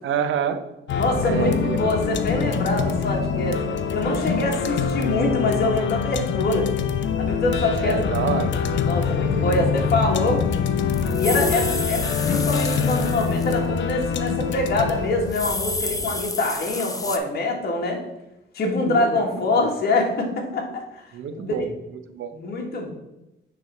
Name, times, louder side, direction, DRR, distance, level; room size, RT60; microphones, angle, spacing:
voice 1, 0.0-0.7 1.2-1.8 7.8-8.5 9.4-9.6 11.7-11.8 18.8-19.7 21.1-21.7 22.1-22.3, right 8 dB, 80° right, 9 dB, 0.8 m, -28 dB
sound 1, 0.9-16.2, left 6 dB, 70° left, 0.7 m, -25 dB
voice 2, 0.9-3.6 3.9-6.7 7.1-8.0 8.7-10.4 11.2-18.0 18.5-21.0 21.4-21.5 22.3-22.9, left 2 dB, 50° left, 0 dB, 1.6 m, -24 dB
sound 2, 10.1-10.2 10.4-13.7 14.0-14.1 15.1-17.2, left 2 dB, 15° left, 0.8 m, -30 dB
9.7 x 3.5 x 4.2 m, 0.92 s
cardioid pair, 90°, 20 cm